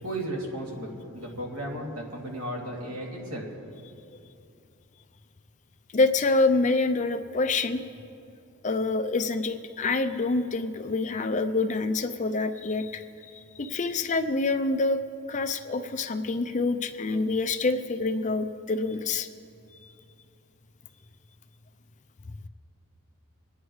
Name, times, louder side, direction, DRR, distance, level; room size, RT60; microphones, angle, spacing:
voice 1, 0.0-3.5, right 1 dB, 70° right, -3 dB, 2.5 m, -35 dB
voice 2, 5.9-7.8 8.6-15.0 15.3-19.3 19.8-19.9, left 3 dB, 35° left, 8 dB, 0.5 m, -26 dB
25.0 x 9.5 x 3.2 m, 2.6 s
head